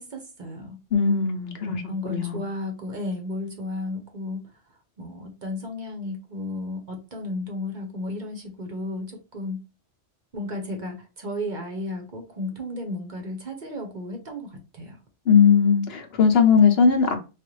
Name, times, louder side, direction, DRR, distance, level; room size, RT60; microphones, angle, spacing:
voice 1, 0.0-0.8 1.6-4.5 5.0-9.6 10.3-15.0, left 1 dB, 45° right, 0.8 m, -33 dB
voice 2, 0.9-2.4 15.3-17.2, left 6 dB, 60° left, 0.9 m, -19 dB
3.7 x 2.4 x 3.1 m
omnidirectional pair, 1.2 m